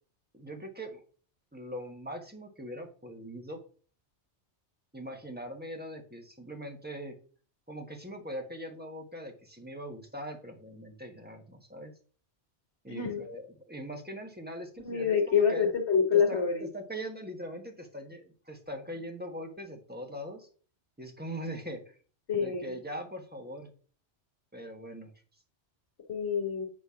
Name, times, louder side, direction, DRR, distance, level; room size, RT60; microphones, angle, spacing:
voice 1, 0.3-1.0 1.5-3.6 4.9-7.1 7.7-11.9 12.8-15.7 16.1-20.5 21.0-22.0 22.4-23.7 24.5-25.1, equal, 10° right, 2 dB, 1.4 m, -41 dB
voice 2, 12.9-13.2 14.8-16.6 22.3-22.7 26.1-26.7, left 6 dB, 70° left, 2 dB, 1.5 m, -27 dB
8.6 x 3.4 x 5.7 m, 0.40 s
omnidirectional pair, 1.2 m